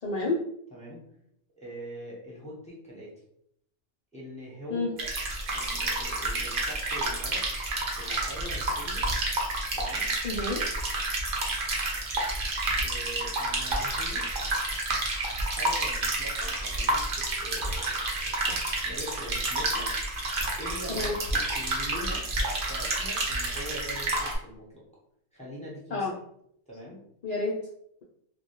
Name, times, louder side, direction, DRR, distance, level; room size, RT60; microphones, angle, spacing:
voice 1, 0.0-0.4 4.7-4.9 10.2-10.6 20.9-21.1 25.9-26.1 27.2-27.6, left 3 dB, 90° left, -5 dB, 0.3 m, -29 dB
voice 2, 0.7-1.0 1.6-3.1 4.1-4.9 5.5-7.4 8.0-9.1 9.8-10.1 12.8-14.7 15.4-18.4 18.8-19.9 20.6-21.1 21.5-24.8 25.3-26.1 26.7-27.0, equal, 10° left, -6 dB, 0.5 m, -43 dB
sound 1, 5.0-24.4, right 2 dB, 55° right, 0.7 m, -29 dB
2.1 x 2.1 x 2.9 m, 0.72 s
omnidirectional pair, 1.2 m